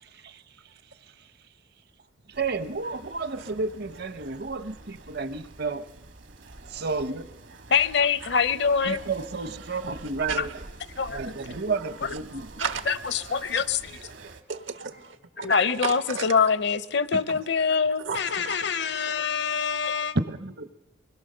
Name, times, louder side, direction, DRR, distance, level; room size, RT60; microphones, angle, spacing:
sound 1, 2.3-14.4, right 2 dB, 70° right, 1.4 m, -46 dB
voice 1, 2.4-5.9 6.7-7.2 8.8-10.6 11.1-12.5 17.1-17.2 20.1-20.7, right 3 dB, 55° right, 0.8 m, -31 dB
voice 2, 7.7-9.0 10.4-10.5 11.0-11.3 12.0-12.1 12.6-13.9 15.4-20.1, left 6 dB, 60° left, 0.7 m, -25 dB
voice 3, 14.5-15.2 15.8-16.3 18.0-18.6, right 6 dB, 90° right, 1.4 m, -32 dB
24.0 x 20.5 x 6.7 m
head